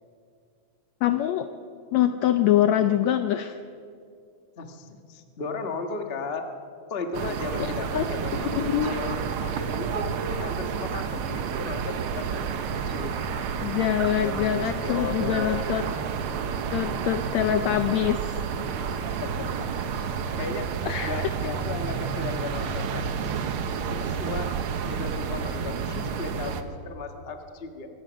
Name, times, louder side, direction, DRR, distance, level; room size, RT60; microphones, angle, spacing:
voice 1, 1.0-1.5 1.9-3.6 7.6-8.0 8.4-8.9 13.6-15.8 16.7-18.4 20.8-21.3, left 11 dB, 80° left, 9 dB, 1.6 m, -24 dB
voice 2, 4.6-6.4 6.9-8.5 8.8-13.2 14.2-15.6 18.9-19.7 20.4-20.7 21.0-24.5 24.9-27.9, left 3 dB, 60° left, 5 dB, 0.6 m, -36 dB
sound 1, 7.1-26.6, right 6 dB, 85° right, 1.2 m, -30 dB
24.5 x 17.0 x 6.3 m, 2.4 s
omnidirectional pair, 3.9 m